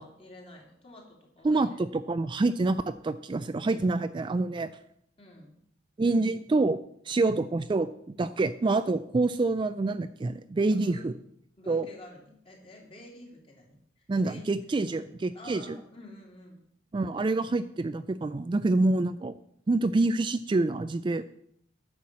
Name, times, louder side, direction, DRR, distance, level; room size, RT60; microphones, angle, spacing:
voice 1, 0.0-1.8 5.2-5.5 7.1-7.4 10.7-11.1 11.6-14.4 14.8-15.1 15.3-16.6, left 1 dB, 30° left, -1 dB, 2.8 m, -50 dB
voice 2, 1.4-4.7 6.0-6.8 7.1-11.1 11.7-11.9 14.1-15.8 16.9-19.3 19.7-21.2, right 2 dB, 25° right, 12 dB, 0.3 m, -27 dB
9.7 x 5.9 x 7.4 m, 0.69 s
head